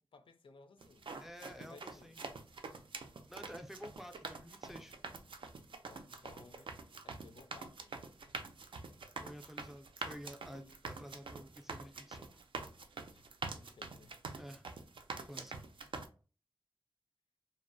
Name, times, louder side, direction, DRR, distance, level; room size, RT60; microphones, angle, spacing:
voice 1, 0.1-1.1 1.5-2.2 5.8-6.7 7.0-7.9 10.4-10.8 13.1-13.3 13.6-14.2, left 3 dB, 85° left, 0.4 m, -59 dB
sound 1, 0.8-16.1, right 4 dB, 75° right, 0.3 m, -46 dB
voice 2, 1.2-2.2 3.3-5.0 9.2-12.4 14.4-14.7 15.3-15.6, equal, 5° right, 0.3 m, -51 dB
2.5 x 2.0 x 2.5 m
wide cardioid pair, 55°, 9 cm